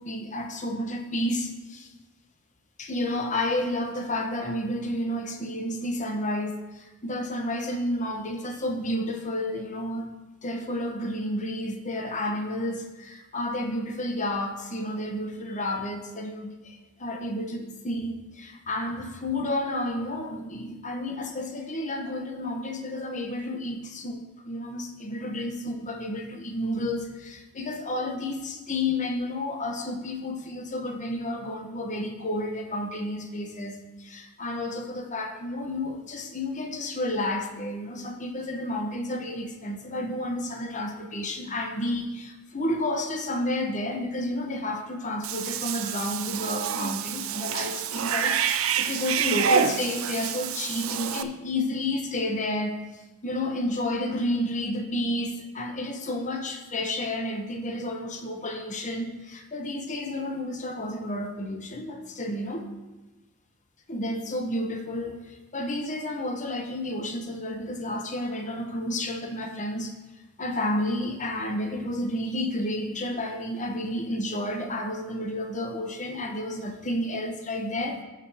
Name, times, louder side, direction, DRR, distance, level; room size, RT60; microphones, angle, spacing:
voice 1, 0.0-1.9 2.8-10.1 10.4-62.7 63.9-69.9 70.4-78.0, left 1 dB, 35° left, 3 dB, 1.0 m, -31 dB
Cat / Bathtub (filling or washing), 45.2-51.2, right 7 dB, 70° right, 0.5 m, -28 dB
15.0 x 5.0 x 3.5 m, 1.1 s
head